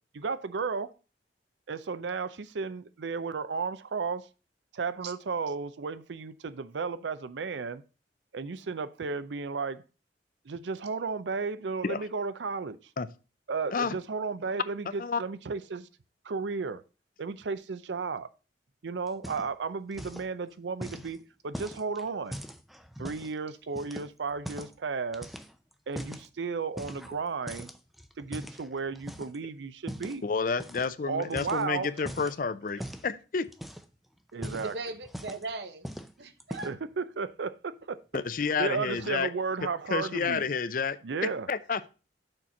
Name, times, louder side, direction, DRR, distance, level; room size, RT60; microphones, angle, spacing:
voice 1, 0.1-0.9 1.7-4.3 4.7-7.8 8.3-9.8 10.5-12.8 13.5-15.9 16.2-16.8 17.2-18.3 18.8-21.2 21.4-22.4 23.0-25.3 25.9-27.7 28.2-30.2 31.1-32.3 34.3-34.7 36.6-38.0 38.6-40.4 41.0-41.5, right 4 dB, 90° right, 0.5 m, -34 dB
sound 1, 19.1-19.7 19.9-20.3 20.8-23.3 23.8-24.8 25.1-26.3 26.8-27.2 27.5-29.4 29.9-30.2 30.6-30.9 31.2-32.4 32.8-33.1 33.5-34.0 34.3-35.5 35.8-36.1 36.4-36.9, equal, ahead, 0.5 m, -41 dB
voice 2, 30.2-33.5 38.1-39.3 39.9-41.9, left 5 dB, 50° left, 0.5 m, -30 dB
voice 3, 34.6-35.9 36.2-36.7, right 3 dB, 70° right, 0.9 m, -38 dB
6.6 x 4.3 x 6.0 m
head